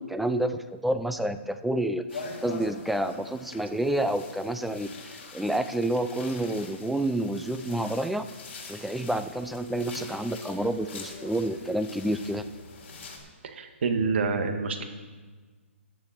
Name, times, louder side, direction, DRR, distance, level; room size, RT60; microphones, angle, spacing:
voice 1, 0.0-8.2 8.7-12.4, right 1 dB, ahead, 10 dB, 0.3 m, -29 dB
sound 1, 2.1-13.2, left 4 dB, 55° left, 3.7 m, -44 dB
voice 2, 13.4-14.8, right 4 dB, 55° right, 6 dB, 1.7 m, -27 dB
14.5 x 9.5 x 4.4 m, 1.4 s
hypercardioid pair, 150°, 7 cm